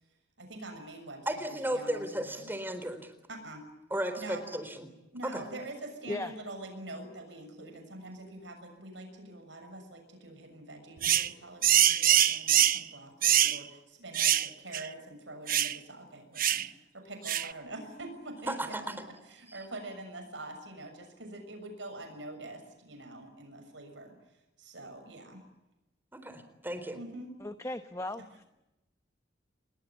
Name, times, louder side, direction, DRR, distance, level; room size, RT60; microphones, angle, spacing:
voice 1, 0.4-2.5 3.3-3.6 4.2-4.5 5.1-24.2 24.6-25.4 26.9-27.3, right 2 dB, 75° right, 6 dB, 6.6 m, -45 dB
voice 2, 1.3-3.1 3.9-4.9 5.2-5.4 18.5-18.8 26.1-27.0, right 1 dB, 10° right, 10 dB, 4.0 m, -34 dB
sound 1, 11.0-11.3 11.6-12.8 13.2-13.6 14.1-14.5 14.7-14.9 15.5-15.8 16.4-16.7 17.3-17.5, right 11 dB, 50° right, 0.9 m, -24 dB
voice 3, 27.4-28.4, left 1 dB, 15° left, 8 dB, 1.0 m, -37 dB
29.5 x 21.0 x 8.6 m, 0.99 s
head